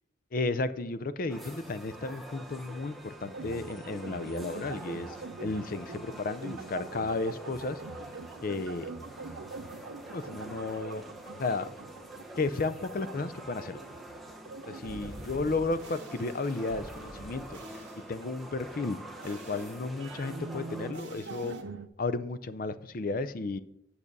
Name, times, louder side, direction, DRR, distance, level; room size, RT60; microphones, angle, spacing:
voice 1, 0.3-7.8 8.4-8.9 10.1-11.0 11.4-11.7 12.4-13.8 14.7-17.6 18.1-19.0 19.2-21.6 22.0-23.6, left 3 dB, 45° left, 13 dB, 0.5 m, -33 dB
sound 1, 1.3-20.9, right 1 dB, ahead, 0.8 m, -46 dB
sound 2, 3.2-16.1 17.0-21.9, right 4 dB, 80° right, 0.6 m, -45 dB
sound 3, 14.8-18.1 19.2-19.8 20.9-21.6, right 1 dB, 60° right, 1.5 m, -47 dB
8.6 x 6.7 x 5.3 m, 0.77 s
head